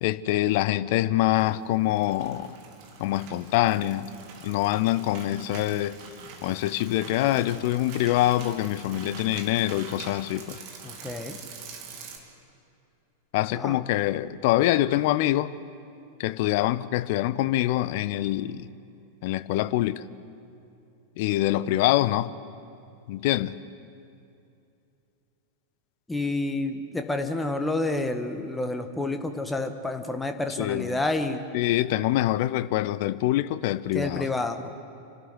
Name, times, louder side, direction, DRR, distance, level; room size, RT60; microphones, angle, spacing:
voice 1, 0.0-2.6 3.0-4.1 4.4-6.0 6.4-10.6 13.3-15.5 16.2-18.7 19.2-20.0 21.2-22.3 23.1-23.6 30.6-31.0 31.5-34.3, left 15 dB, 50° left, 0.7 m, -25 dB
sound 1, 1.7-12.2, right 5 dB, 45° right, 3.1 m, -44 dB
voice 2, 10.8-11.4 13.6-13.8 26.1-31.4 33.9-34.7, left 2 dB, 5° left, 1.7 m, -29 dB
28.5 x 12.5 x 9.7 m
figure-of-eight pair, 90°, 0 cm